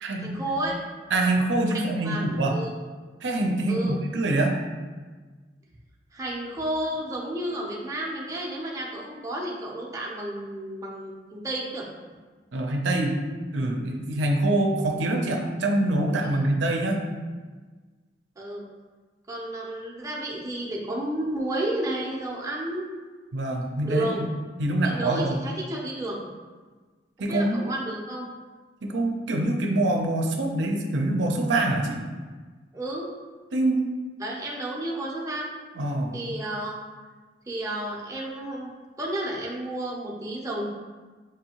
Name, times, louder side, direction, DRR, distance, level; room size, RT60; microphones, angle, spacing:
voice 1, 0.2-0.8 1.7-2.2 2.5-2.7 3.7-4.0 6.1-11.9 16.2-16.4 18.4-18.7 19.3-22.9 23.8-24.3 24.8-26.2 27.2-28.3 32.7-33.1 34.2-35.5 36.1-36.9 37.5-38.7 39.0-40.7, right 1 dB, 20° right, -3 dB, 0.6 m, -31 dB
voice 2, 1.1-2.5 3.2-4.5 12.5-13.1 13.5-17.0 23.3-24.1 24.6-25.4 27.2-27.7 28.8-32.0 33.5-33.8 35.8-36.2, right 1 dB, 90° right, 1 dB, 0.5 m, -25 dB
4.9 x 2.7 x 2.9 m, 1.4 s
head